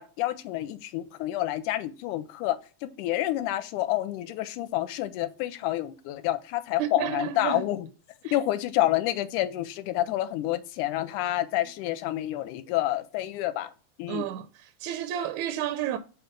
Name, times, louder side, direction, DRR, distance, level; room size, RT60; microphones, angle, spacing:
voice 1, 0.0-7.9 8.3-13.7 14.0-14.2, left 14 dB, 85° left, 2.0 m, -28 dB
voice 2, 6.8-7.7 8.2-8.4 14.1-16.0, right 11 dB, 80° right, 1.8 m, -31 dB
5.8 x 4.5 x 5.1 m
omnidirectional pair, 3.7 m